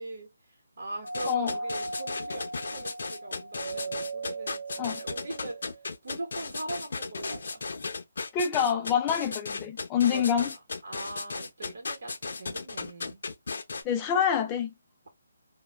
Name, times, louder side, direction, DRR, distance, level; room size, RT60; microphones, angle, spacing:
voice 1, 0.0-5.7 6.0-7.6 10.1-10.2 10.8-13.2, right 2 dB, 70° right, 1.1 m, -41 dB
Doorbell, 1.0-5.9, right 2 dB, 50° right, 0.5 m, -37 dB
sound 1, 1.1-13.8, left 4 dB, 65° left, 0.6 m, -36 dB
voice 2, 8.3-10.5 13.8-14.7, left 8 dB, 15° left, 0.3 m, -26 dB
2.3 x 2.1 x 3.0 m
hypercardioid pair, 165°, 0 cm